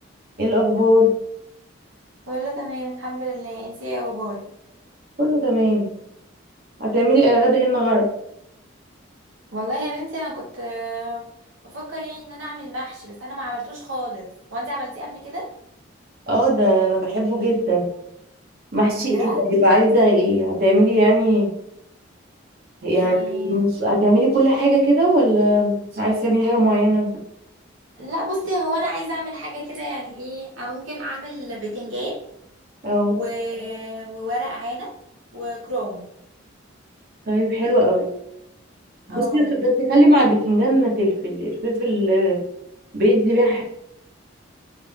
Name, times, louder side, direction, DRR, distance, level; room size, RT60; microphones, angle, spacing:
voice 1, 0.4-1.1 5.2-5.9 6.8-8.1 16.3-17.9 18.7-21.5 22.8-27.2 32.8-33.2 37.3-38.1 39.1-42.4 42.9-43.6, equal, 45° right, -3 dB, 1.2 m, -18 dB
voice 2, 2.3-4.5 9.5-11.3 11.6-15.5 19.0-19.4 23.0-23.6 28.0-32.2 33.1-34.9 35.3-36.1 39.1-39.5, equal, 75° right, -4 dB, 0.9 m, -30 dB
3.8 x 3.4 x 2.4 m, 0.75 s
head